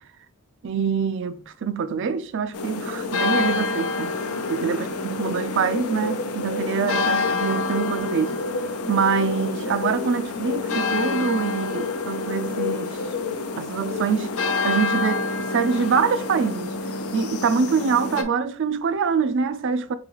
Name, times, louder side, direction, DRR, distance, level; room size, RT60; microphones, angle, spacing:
voice 1, 0.6-4.2 4.5-8.4 8.9-13.0 13.6-14.3 14.6-16.8 17.1-19.9, right 6 dB, 60° right, 0.4 m, -25 dB
sound 1, 2.5-18.2, left 4 dB, 85° left, 0.5 m, -27 dB
4.0 x 3.7 x 3.0 m
head